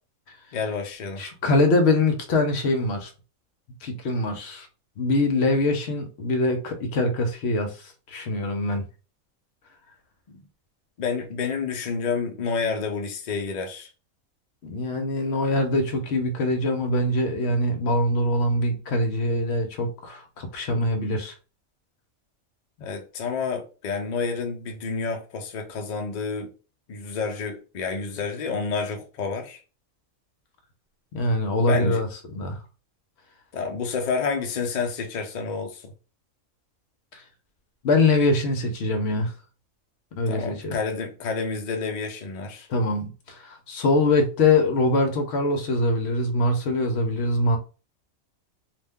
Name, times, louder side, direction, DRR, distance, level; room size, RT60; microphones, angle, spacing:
voice 1, 0.5-1.2 10.3-10.4 11.0-13.9 22.8-26.5 26.9-29.6 31.6-32.0 33.5-35.9 40.3-42.7, left 5 dB, 80° left, 0.4 m, -29 dB
voice 2, 1.2-3.1 3.8-4.7 5.0-8.8 14.6-21.3 31.1-32.6 37.1-37.2 37.8-39.3 40.2-40.8 42.7-47.6, left 2 dB, 60° left, 0.8 m, -23 dB
2.5 x 2.1 x 3.4 m
omnidirectional pair, 1.5 m